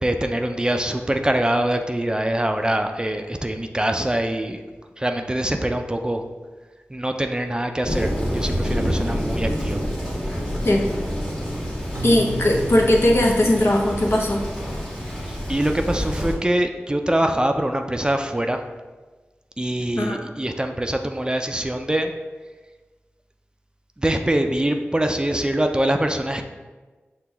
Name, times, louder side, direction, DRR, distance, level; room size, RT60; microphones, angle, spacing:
voice 1, 0.0-4.6 5.0-6.2 6.9-9.8 15.2-18.6 19.6-22.1 24.0-26.5, right 1 dB, 20° right, 5 dB, 0.3 m, -24 dB
Thunder, 7.8-16.3, equal, 20° left, 1.3 m, -27 dB
Keyboard (musical), 11.9-15.7, equal, 85° right, 0.5 m, -37 dB
voice 2, 12.0-14.4 20.0-20.2, left 1 dB, 65° left, 0 dB, 0.8 m, -19 dB
5.8 x 2.2 x 3.4 m, 1.3 s
cardioid pair, 40°, 4 cm